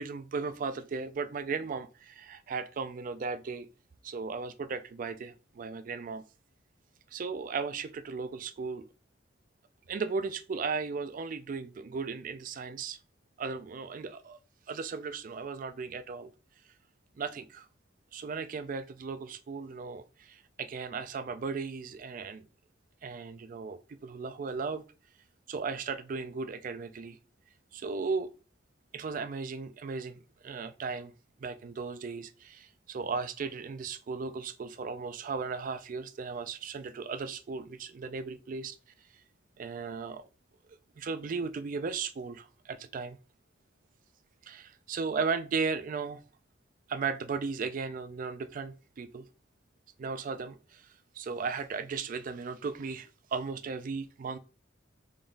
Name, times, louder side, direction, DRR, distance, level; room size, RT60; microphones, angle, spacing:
voice 1, 0.0-3.7 4.0-6.2 7.1-8.8 9.9-13.0 13.4-14.4 14.7-16.3 17.2-17.7 18.1-22.5 23.0-24.8 25.5-27.2 27.7-28.3 28.9-31.1 31.4-38.8 39.6-40.3 41.0-43.2 44.4-46.2 46.9-49.3 50.0-50.9 51.1-54.4, right 4 dB, 40° right, 0.3 m, -36 dB
3.7 x 3.5 x 2.5 m
head